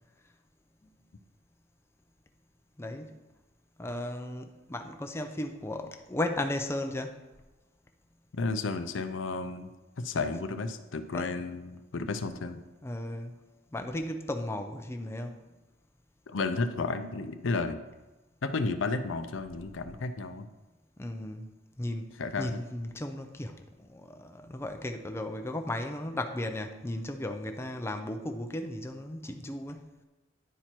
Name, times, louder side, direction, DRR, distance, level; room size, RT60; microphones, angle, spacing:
voice 1, 2.8-3.2 3.8-7.2 11.1-11.3 12.8-13.3 13.7-15.4 21.0-21.5 21.8-29.8, left 1 dB, 15° left, 5 dB, 0.5 m, -35 dB
voice 2, 8.3-9.7 10.0-12.6 16.3-17.8 18.4-20.5 22.2-22.5, left 3 dB, 70° left, 9 dB, 0.5 m, -32 dB
10.0 x 4.5 x 4.4 m, 1.1 s
head